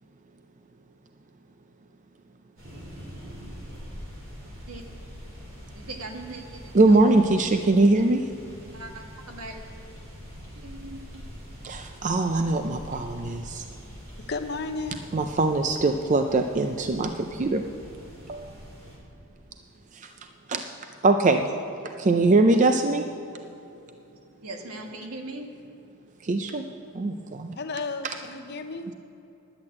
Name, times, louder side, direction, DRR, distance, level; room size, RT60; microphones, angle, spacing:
sound 1, 2.6-19.0, equal, 60° right, 3.4 m, -44 dB
voice 1, 5.7-7.0 7.5-7.6 7.9-8.0 8.7-9.6 10.5-11.2 24.4-25.4, right 2 dB, 85° right, 2 dB, 1.6 m, -40 dB
voice 2, 6.7-8.3 11.6-13.6 15.1-17.6 18.3-18.5 19.9-20.1 20.5-20.7 21.0-21.5 22.0-23.1 26.2-26.7 26.9-27.6 28.0-28.1, right 2 dB, 35° right, 6 dB, 0.4 m, -22 dB
voice 3, 14.2-15.0 27.6-28.9, left 3 dB, 50° left, 7 dB, 0.7 m, -33 dB
10.5 x 8.1 x 8.5 m, 2.9 s
head